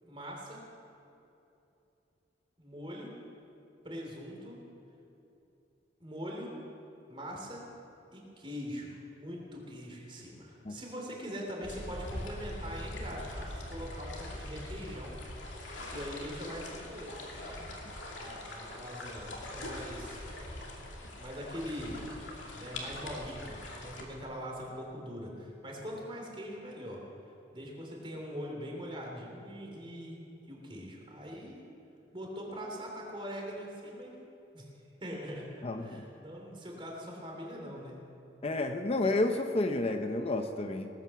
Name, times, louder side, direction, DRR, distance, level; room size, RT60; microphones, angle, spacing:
voice 1, 0.0-0.6 2.6-3.1 3.8-4.6 6.0-6.5 7.1-7.6 8.1-15.2 15.9-17.7 18.2-20.2 21.2-22.0 22.5-27.0 27.5-30.2 30.5-31.6 32.1-34.1 34.5-34.6 35.0-35.5 35.8-38.0, equal, 30° right, -1 dB, 3.2 m, -42 dB
sound 1, 11.6-24.0, left 1 dB, 90° left, 2.6 m, -42 dB
voice 2, 35.6-36.0 38.4-40.9, left 2 dB, 35° left, 6 dB, 0.6 m, -30 dB
18.5 x 9.4 x 7.0 m, 2.9 s
head